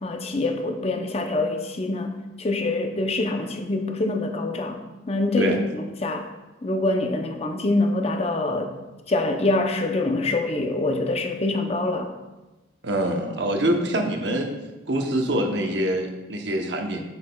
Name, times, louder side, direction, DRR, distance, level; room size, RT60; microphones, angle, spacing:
voice 1, 0.0-6.3 6.6-8.7 9.1-12.1, left 2 dB, 30° left, 5 dB, 0.6 m, -25 dB
voice 2, 12.8-14.5 14.9-17.0, right 1 dB, 60° right, 3 dB, 0.8 m, -24 dB
7.8 x 7.3 x 2.3 m, 1.1 s
head